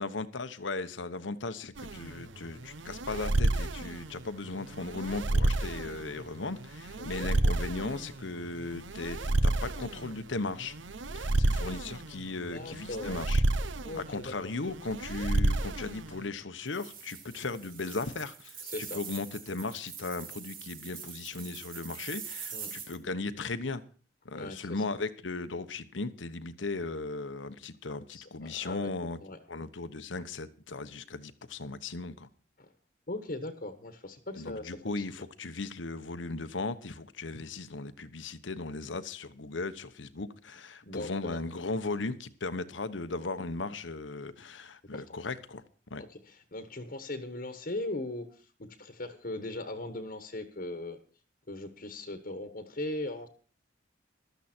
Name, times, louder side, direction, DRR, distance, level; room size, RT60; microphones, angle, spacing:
voice 1, 0.0-10.7 11.1-13.4 13.9-23.8 24.2-29.2 29.5-32.3 34.4-45.6 45.9-46.0, left 3 dB, 85° left, 11 dB, 1.1 m, -37 dB
sound 1, 1.8-16.3, right 2 dB, 85° right, 0.9 m, -31 dB
voice 2, 7.0-7.3 11.3-11.4 12.5-13.2 13.8-14.3 18.6-19.0 22.5-22.7 24.3-24.8 28.1-28.9 29.2-29.4 32.6-32.7 33.1-35.0 40.8-41.4 44.9-45.2 46.1-51.0 51.5-53.3, left 2 dB, 50° left, 8 dB, 1.3 m, -39 dB
sound 2, 16.7-23.0, right 7 dB, 45° right, 3.0 m, -44 dB
15.0 x 12.5 x 4.4 m, 0.41 s
head